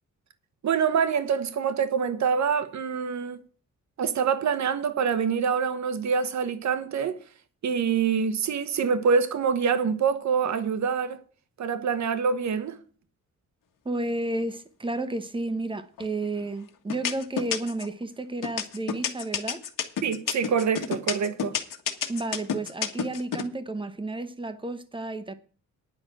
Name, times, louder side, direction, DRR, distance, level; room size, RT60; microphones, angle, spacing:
voice 1, 0.6-3.4 4.0-7.2 7.6-11.2 11.6-12.8 20.0-21.6, right 6 dB, 60° right, 1.2 m, -25 dB
voice 2, 13.8-19.6 22.1-25.3, right 2 dB, 15° right, 0.9 m, -32 dB
sound 1, 16.0-16.4 16.9-17.9 18.4-23.4, left 8 dB, 90° left, 1.7 m, -29 dB
10.0 x 6.1 x 8.7 m
wide cardioid pair, 160°, 32 cm